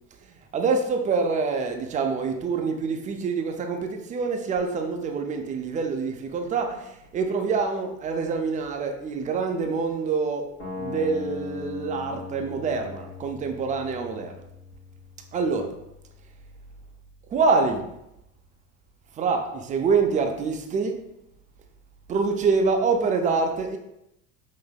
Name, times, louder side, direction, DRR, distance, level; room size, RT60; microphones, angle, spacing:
voice 1, 0.5-10.5 10.8-14.3 15.3-15.7 17.3-17.8 19.2-21.0 22.1-23.8, right 4 dB, 20° right, 4 dB, 0.4 m, -26 dB
sound 1, 10.6-16.6, left 4 dB, 90° left, 1.3 m, -39 dB
5.6 x 2.7 x 2.2 m, 0.82 s
figure-of-eight pair, 65°, 43 cm